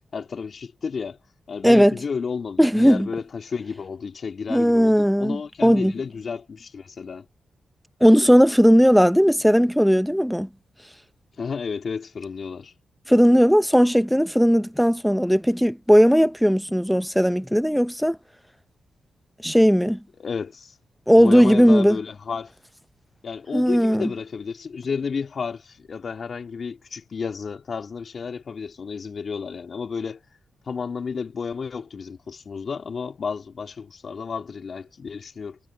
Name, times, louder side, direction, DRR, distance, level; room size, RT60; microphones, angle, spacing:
voice 1, 0.1-1.2 1.5-7.3 11.4-12.7 20.2-20.8 21.1-22.5 23.2-30.2 30.6-35.6, left 5 dB, 60° left, 2.5 m, -32 dB
voice 2, 1.6-1.9 2.6-3.1 4.5-5.9 8.0-10.5 13.1-18.2 19.4-20.0 21.1-22.0 23.5-24.1, equal, ahead, 0.6 m, -17 dB
cardioid pair, 55°, 0 cm